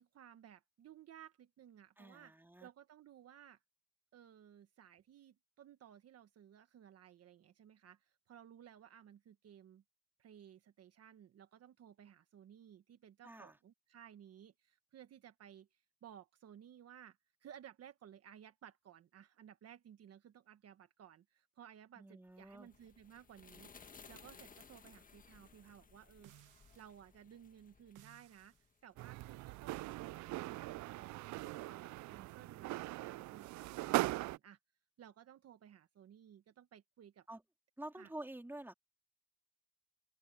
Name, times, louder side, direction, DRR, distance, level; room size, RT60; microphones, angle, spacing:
voice 1, 0.0-2.3 2.6-3.6 4.1-9.8 10.2-26.3 26.7-28.5 28.8-34.6 35.0-37.3 37.9-38.1, right 9 dB, 55° right, 1.3 m, -58 dB
voice 2, 2.0-2.7 13.2-13.6 22.0-22.7 37.3-37.4 37.8-38.7, right 1 dB, 5° right, 3.8 m, -49 dB
sound 1, 22.4-29.0, left 5 dB, 30° left, 1.5 m, -60 dB
sound 2, 26.2-27.0 27.9-28.7 29.7-30.2 31.4-31.7, right 17 dB, 85° right, 1.2 m, -62 dB
sound 3, 29.0-34.4, right 19 dB, 70° right, 0.4 m, -40 dB
open air
cardioid pair, 100°, 30 cm